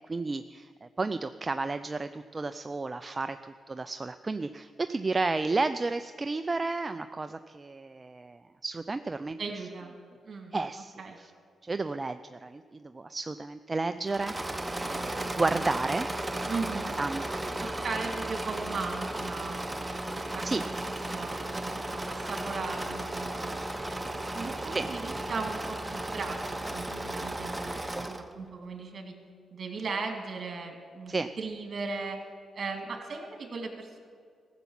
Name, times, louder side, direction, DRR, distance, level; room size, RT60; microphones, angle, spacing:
voice 1, 0.1-9.4 10.5-11.3 11.6-16.1 17.0-17.8 20.4-20.7 24.7-24.9 31.1-31.3, right 3 dB, 30° right, 10 dB, 0.4 m, -32 dB
voice 2, 9.4-9.9 10.2-10.5 11.0-11.2 16.5-16.9 17.6-19.8 20.3-20.8 21.1-23.5 24.3-29.2 29.5-32.2 32.5-34.0, right 4 dB, 55° right, 2 dB, 2.5 m, -37 dB
Engine / Mechanisms, 14.0-28.3, right 1 dB, 15° right, 0.9 m, -35 dB
14.5 x 7.0 x 7.3 m, 2.1 s
supercardioid pair, 60°, 0 cm